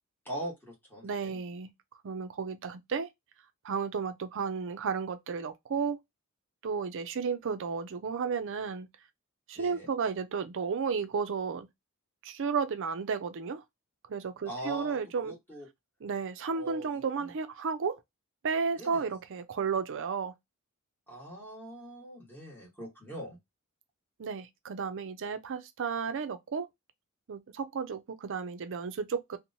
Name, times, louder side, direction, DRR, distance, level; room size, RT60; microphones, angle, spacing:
voice 1, 0.2-1.4 9.5-9.9 14.4-15.7 16.5-17.3 18.8-19.2 21.1-23.4, right 1 dB, 10° left, 1.3 m, -42 dB
voice 2, 1.0-1.7 2.0-3.1 3.6-6.0 6.6-8.9 9.5-11.7 12.2-13.6 14.1-15.3 16.0-18.0 18.4-20.3 24.2-26.7 27.3-29.4, right 5 dB, 55° right, 0.4 m, -33 dB
2.9 x 2.1 x 2.6 m
head